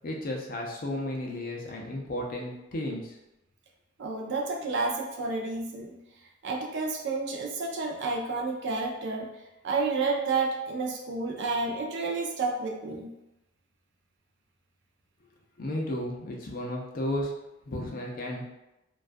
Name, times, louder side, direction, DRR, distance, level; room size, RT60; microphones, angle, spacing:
voice 1, 0.0-3.2 15.6-17.3 17.7-18.4, left 1 dB, 45° left, -1 dB, 0.4 m, -33 dB
voice 2, 4.0-6.0 6.4-9.3 9.6-13.1, right 3 dB, 60° right, 0 dB, 0.4 m, -30 dB
2.3 x 2.2 x 2.5 m, 0.93 s
head